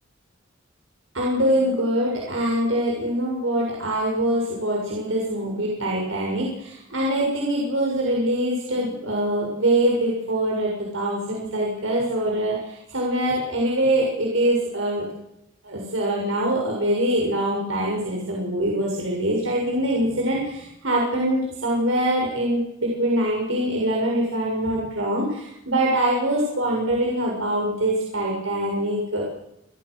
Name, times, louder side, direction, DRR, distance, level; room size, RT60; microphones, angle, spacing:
voice 1, 1.1-15.0 15.6-29.3, right 1 dB, 75° right, -2 dB, 7.1 m, -24 dB
30.0 x 20.0 x 6.5 m, 0.84 s
head